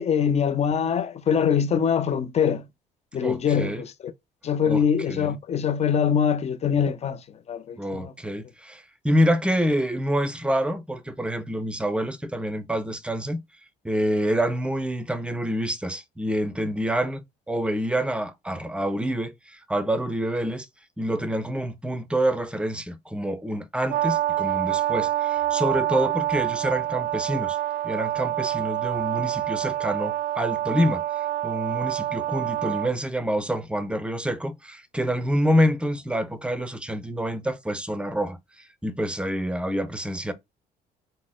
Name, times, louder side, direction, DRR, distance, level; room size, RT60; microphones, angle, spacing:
voice 1, 0.0-2.6 3.1-4.1 4.4-8.1, left 7 dB, 40° left, 0.7 m, -23 dB
voice 2, 3.2-3.8 4.6-4.8 5.1-5.4 7.8-13.4 13.8-17.2 17.5-20.7 21.0-27.6 27.8-31.0 31.4-38.4 38.8-40.3, equal, 5° right, 0.6 m, -27 dB
Brass instrument, 23.9-32.9, right 13 dB, 55° right, 0.4 m, -27 dB
3.9 x 2.0 x 3.8 m
cardioid pair, 110°, 17 cm